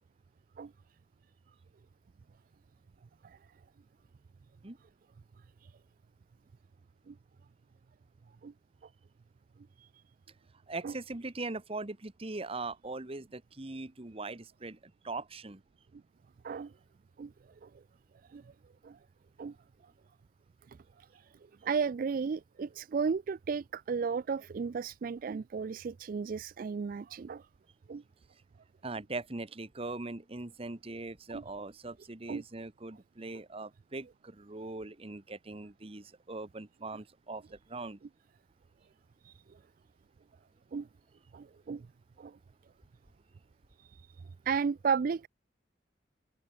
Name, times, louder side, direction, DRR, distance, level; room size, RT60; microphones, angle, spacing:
voice 1, 10.7-14.8 15.0-15.6 28.8-38.0, right 2 dB, 35° right, 1.2 m, -41 dB
voice 2, 20.7-21.3 21.6-27.4 27.9-28.0 31.3-31.4 32.3-32.4 39.2-39.3 40.7-40.9 41.3-41.9 42.2-42.4 43.8-44.0 44.5-45.3, right 5 dB, 50° right, 0.3 m, -34 dB
open air
head